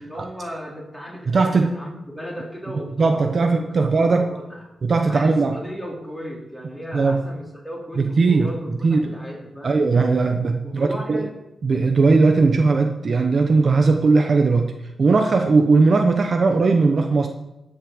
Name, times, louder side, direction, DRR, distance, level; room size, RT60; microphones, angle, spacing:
voice 1, 0.0-4.6 5.1-9.8 10.6-11.4, equal, 5° left, -3 dB, 4.1 m, -36 dB
voice 2, 1.3-1.7 3.0-4.4 4.8-5.6 6.9-7.2 8.0-8.5 8.8-9.1 9.6-11.3 11.6-14.7 15.0-17.3, right 4 dB, 50° right, 4 dB, 1.0 m, -18 dB
12.5 x 6.6 x 7.3 m, 0.93 s
wide cardioid pair, 105°, 0 cm